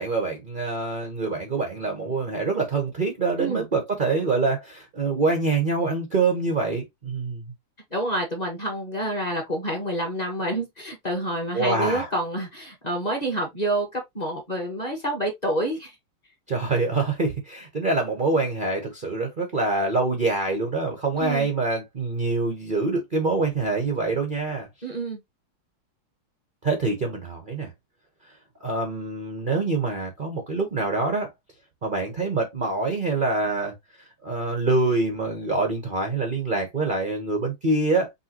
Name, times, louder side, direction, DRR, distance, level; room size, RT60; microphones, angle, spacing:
voice 1, 0.0-7.5 11.5-12.1 16.5-24.7 26.6-27.7 28.6-31.3 31.8-38.1, right 3 dB, 65° right, 0.4 m, -25 dB
voice 2, 7.9-15.9 21.2-21.5 24.8-25.2, right 1 dB, 25° left, 1.0 m, -28 dB
5.5 x 2.9 x 2.8 m
omnidirectional pair, 2.3 m